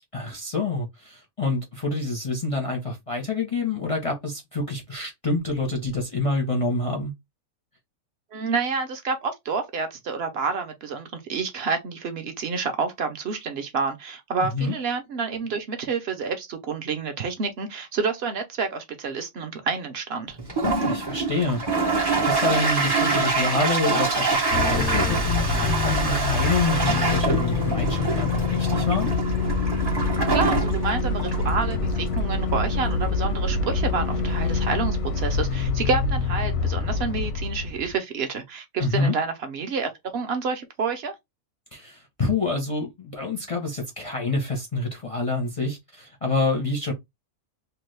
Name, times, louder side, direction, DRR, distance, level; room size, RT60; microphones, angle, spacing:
voice 1, 0.1-7.1 14.5-14.7 20.8-21.8 22.1-29.1 38.8-39.2 41.7-46.9, left 3 dB, 40° left, 0.5 m, -27 dB
voice 2, 8.3-20.4 30.3-41.1, right 5 dB, 60° right, 0.7 m, -29 dB
Toilet flush, 20.4-33.5, right 4 dB, 35° right, 0.4 m, -26 dB
sound 1, 24.5-37.9, left 4 dB, 85° left, 1.1 m, -25 dB
2.9 x 2.3 x 3.2 m
omnidirectional pair, 1.6 m